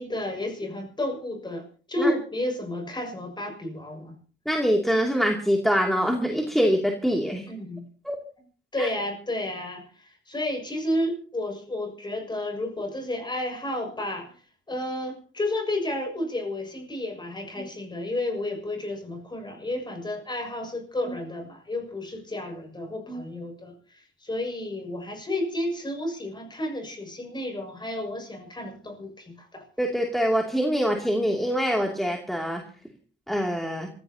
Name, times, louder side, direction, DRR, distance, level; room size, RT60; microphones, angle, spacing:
voice 1, 0.0-4.1 7.5-7.9 8.7-14.3 14.7-29.6, left 1 dB, 20° left, 3 dB, 6.4 m, -31 dB
voice 2, 4.5-7.4 8.0-8.2 8.8-8.9 29.8-32.6 33.3-33.9, equal, ahead, 0 dB, 2.7 m, -24 dB
26.5 x 16.0 x 2.9 m, 0.42 s
cardioid pair, 90°, 20 cm